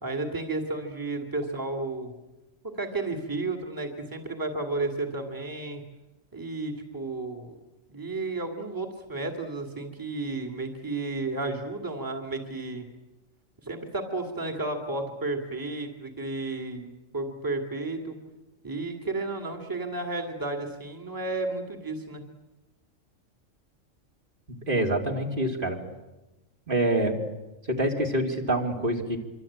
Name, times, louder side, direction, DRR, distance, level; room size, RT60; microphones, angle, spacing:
voice 1, 0.0-2.1 2.8-5.8 6.3-7.6 7.9-12.8 13.6-16.9 17.1-18.2 18.6-22.2, right 2 dB, 15° right, 4 dB, 2.5 m, -32 dB
voice 2, 24.5-25.8 26.7-27.2 27.7-29.2, right 1 dB, 40° right, 1 dB, 3.0 m, -26 dB
25.5 x 25.0 x 8.8 m, 1.0 s
omnidirectional pair, 1.4 m